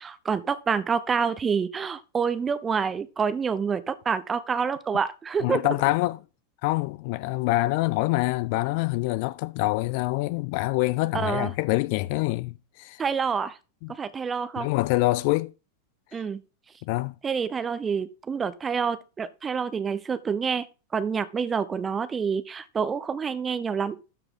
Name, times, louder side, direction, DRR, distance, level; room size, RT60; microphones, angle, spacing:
voice 1, 0.0-5.6 11.1-11.5 13.0-13.6 13.9-14.7 16.1-16.4 17.2-20.7 20.9-24.0, right 6 dB, 20° right, 0.8 m, -27 dB
voice 2, 5.4-6.2 6.6-13.0 13.8-13.9 14.6-15.5 16.1-16.2 16.8-17.1, left 20 dB, 45° left, 0.5 m, -25 dB
12.5 x 4.8 x 3.9 m
figure-of-eight pair, 90°, 0 cm